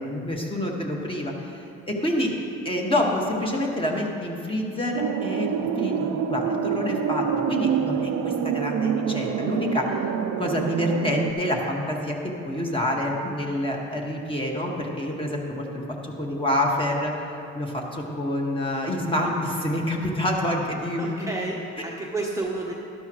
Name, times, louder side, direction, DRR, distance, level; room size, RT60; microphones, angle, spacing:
voice 1, 0.0-1.6 1.9-2.3 2.7-9.9 10.4-17.1 17.5-21.3, left 1 dB, 15° left, -1 dB, 1.8 m, -27 dB
sound 1, 4.9-11.3, right 7 dB, 80° right, 0.7 m, -26 dB
voice 2, 21.0-22.7, right 2 dB, 10° right, -3 dB, 1.0 m, -30 dB
13.0 x 11.5 x 3.1 m, 2.7 s
cardioid pair, 90°, 30 cm